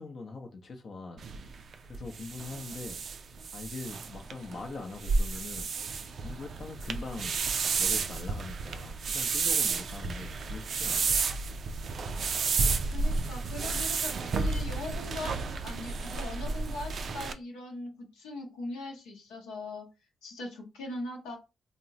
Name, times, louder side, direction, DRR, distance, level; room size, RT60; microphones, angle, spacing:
voice 1, 0.0-3.0 3.5-5.7 6.2-7.4 7.8-11.2, left 3 dB, 60° left, 0.6 m, -42 dB
sound 1, 1.2-17.3, right 4 dB, 65° right, 0.3 m, -31 dB
voice 2, 12.9-19.9 20.2-21.4, left 2 dB, 90° left, 0.8 m, -40 dB
3.6 x 2.0 x 2.7 m
hypercardioid pair, 40°, 0 cm